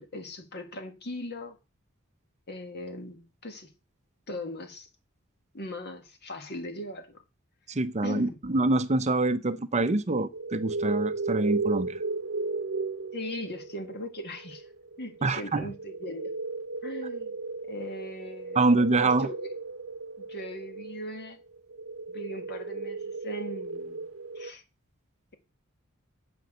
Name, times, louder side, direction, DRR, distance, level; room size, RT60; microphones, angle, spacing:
voice 1, 0.0-1.6 2.5-3.7 4.3-4.9 5.5-7.2 8.0-8.4 13.1-14.7 15.0-16.3 16.8-17.3 17.7-18.6 19.0-19.5 20.2-21.4 22.1-24.1 24.4-24.6, left 1 dB, 55° left, 2.0 m, -39 dB
voice 2, 7.7-12.0 15.2-15.7 18.5-19.3, right 2 dB, 35° right, 0.7 m, -25 dB
sound 1, 10.3-24.5, right 3 dB, 70° right, 0.8 m, -35 dB
8.5 x 6.1 x 7.9 m
head